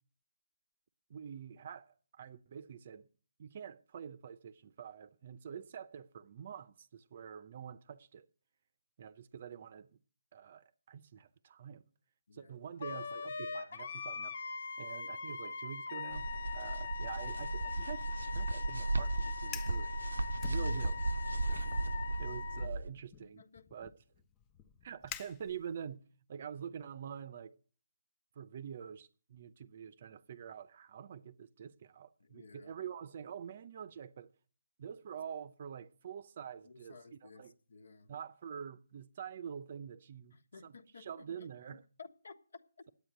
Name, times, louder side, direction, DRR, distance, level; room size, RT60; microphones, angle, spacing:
voice 1, 1.1-3.1 3.4-8.3 9.0-9.9 10.3-11.8 12.3-14.4 14.8-20.1 20.4-21.0 22.2-23.4 23.7-23.9 24.8-26.0 26.3-27.6 28.4-34.3 34.8-37.5 38.1-40.4 40.6-41.8, right 8 dB, 40° right, 0.6 m, -46 dB
Wind instrument woodwind instrument, 12.8-22.7, left 5 dB, 55° left, 1.0 m, -42 dB
sound 1, 16.1-22.9, right 2 dB, 80° right, 0.6 m, -35 dB
Fire, 19.4-19.8 20.4-21.2 21.5-21.9 22.6-25.9, left 9 dB, 15° left, 0.5 m, -49 dB
voice 2, 23.2-23.7 32.2-32.8 36.6-38.1 40.3-42.9, left 4 dB, 70° left, 1.4 m, -56 dB
9.9 x 8.7 x 9.1 m
hypercardioid pair, 160°, 0 cm